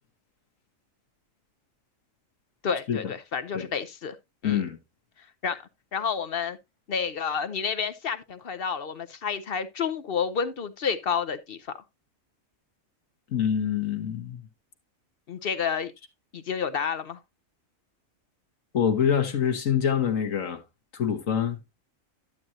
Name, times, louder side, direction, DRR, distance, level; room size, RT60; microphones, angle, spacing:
voice 1, 2.6-4.2 4.4-4.6 5.4-5.6 5.9-6.6 6.9-11.7 15.3-15.9 16.3-17.2, left 6 dB, 55° left, 0.8 m, -30 dB
voice 2, 4.4-4.8 13.3-14.4 18.7-20.6 20.9-21.6, left 8 dB, 75° left, 1.7 m, -25 dB
11.5 x 7.6 x 2.8 m
omnidirectional pair, 1.4 m